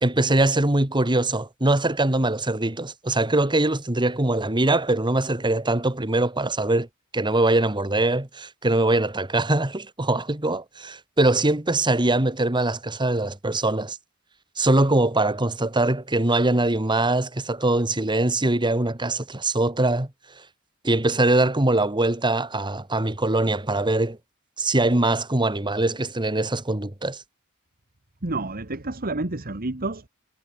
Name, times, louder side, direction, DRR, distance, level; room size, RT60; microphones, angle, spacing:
voice 1, 0.0-6.9 7.1-14.0 14.6-20.1 20.8-24.2 24.6-27.2, right 2 dB, 20° right, 1.9 m, -22 dB
voice 2, 28.2-30.1, right 2 dB, 40° right, 1.8 m, -29 dB
head